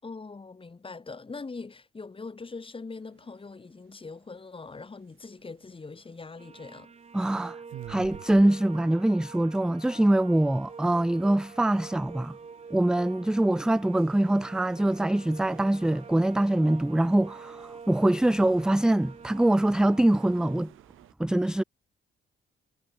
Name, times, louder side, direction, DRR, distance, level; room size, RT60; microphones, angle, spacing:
voice 1, 0.0-6.9, left 4 dB, 25° left, 5.6 m, -42 dB
sound 1, 3.0-21.1, right 15 dB, 85° right, 6.5 m, -54 dB
sound 2, 6.4-20.7, right 5 dB, 35° right, 2.1 m, -47 dB
voice 2, 7.1-7.6 7.9-12.4 12.7-20.7 21.2-21.6, right 1 dB, 5° right, 0.4 m, -24 dB
cardioid pair, 90°, 20 cm